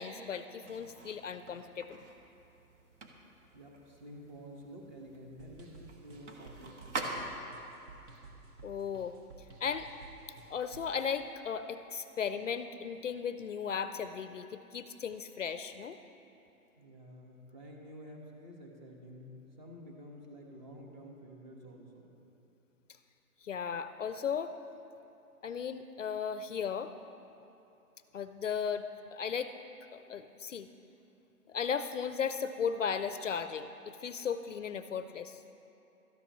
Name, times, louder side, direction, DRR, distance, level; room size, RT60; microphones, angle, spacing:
voice 1, 0.0-2.0 8.6-9.1 9.6-9.9 10.5-16.0 23.4-24.5 25.4-26.9 28.1-29.5 29.9-30.7 31.5-33.7 34.0-35.4, left 7 dB, 55° left, 10 dB, 0.5 m, -36 dB
sound 1, 0.6-7.7, right 2 dB, 50° right, 1.3 m, -45 dB
voice 2, 3.5-7.3 16.8-22.2, equal, 30° right, 0 dB, 1.5 m, -50 dB
sound 2, 5.4-11.0, right 3 dB, 75° right, 1.7 m, -54 dB
17.5 x 13.0 x 3.1 m, 2.9 s
hypercardioid pair, 170°, 45 cm